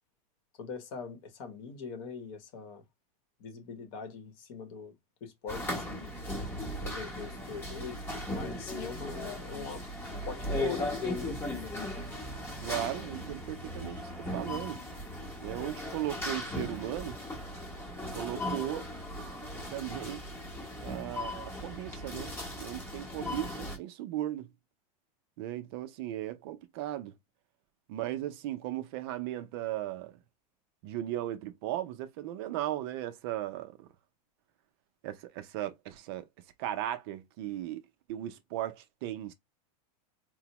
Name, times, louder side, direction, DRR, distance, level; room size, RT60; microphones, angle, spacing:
voice 1, 0.6-2.8 3.4-4.9 5.2-6.1 6.8-11.7, left 5 dB, 45° left, 0.9 m, -42 dB
sound 1, 5.5-23.8, left 1 dB, 10° left, 0.9 m, -38 dB
voice 2, 12.6-14.8 15.4-17.2 18.1-18.9 19.7-20.2 20.8-24.5 25.4-27.1 27.9-30.1 30.8-33.9 35.0-36.3 36.6-37.8 38.1-39.3, right 13 dB, 45° right, 0.5 m, -37 dB
4.3 x 2.0 x 2.9 m
supercardioid pair, 165°, 19 cm